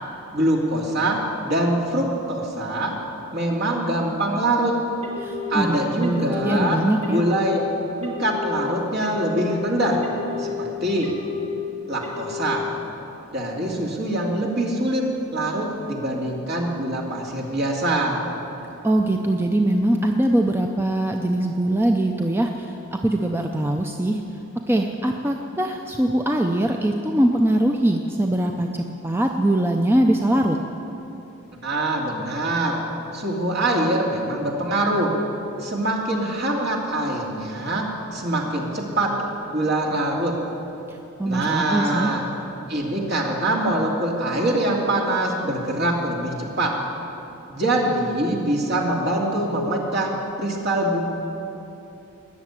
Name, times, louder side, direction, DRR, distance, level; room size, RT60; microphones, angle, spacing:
voice 1, 0.3-2.9 3.3-4.7 5.5-6.8 7.1-7.6 8.0-10.0 10.4-11.1 11.9-12.6 13.3-15.0 15.3-18.2 31.6-32.8 33.1-35.1 35.6-37.9 38.1-40.3 41.2-42.3 42.7-46.7 47.5-50.1 50.4-51.0, right 1 dB, 50° right, -1 dB, 2.6 m, -24 dB
Telephone, 5.0-5.5 6.0-6.5 7.0-7.5 8.0-8.5 9.0-9.5 10.0-10.5 11.0-11.5 12.0-12.5, left 8 dB, 30° right, 2.8 m, -33 dB
voice 2, 5.2-7.2 18.8-22.7 23.0-24.2 24.7-28.7 29.0-30.6 41.2-42.1, right 1 dB, 10° right, 3 dB, 0.6 m, -22 dB
20.0 x 7.1 x 9.8 m, 3.0 s
head